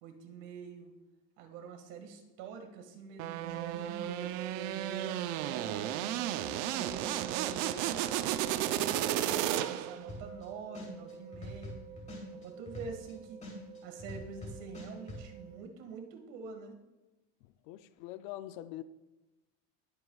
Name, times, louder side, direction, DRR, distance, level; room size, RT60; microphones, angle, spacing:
voice 1, 0.0-0.9 1.4-6.1 6.7-11.8 12.3-13.4 13.8-16.7, right 5 dB, 90° right, 2.0 m, -46 dB
sound 1, 3.2-10.0, right 13 dB, 70° right, 0.7 m, -33 dB
sound 2, 3.4-15.6, right 6 dB, 20° right, 0.4 m, -47 dB
sound 3, 10.1-10.4 10.7-13.1 13.4-15.2, left 1 dB, 20° left, 3.2 m, -44 dB
voice 2, 17.4-18.8, left 14 dB, 60° left, 0.6 m, -44 dB
20.5 x 8.0 x 2.4 m
cardioid pair, 175°, 38 cm